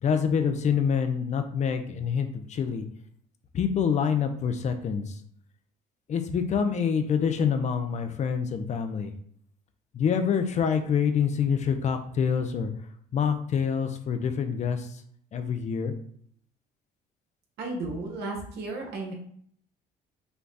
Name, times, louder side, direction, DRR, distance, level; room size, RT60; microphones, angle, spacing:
voice 1, 0.0-2.9 3.5-5.2 6.1-9.1 9.9-12.7 13.1-15.0 15.3-15.9, left 7 dB, 45° left, 7 dB, 0.6 m, -26 dB
voice 2, 17.6-19.1, right 2 dB, 75° right, 1 dB, 1.4 m, -34 dB
5.8 x 2.3 x 4.0 m, 0.62 s
cardioid pair, 110°, 17 cm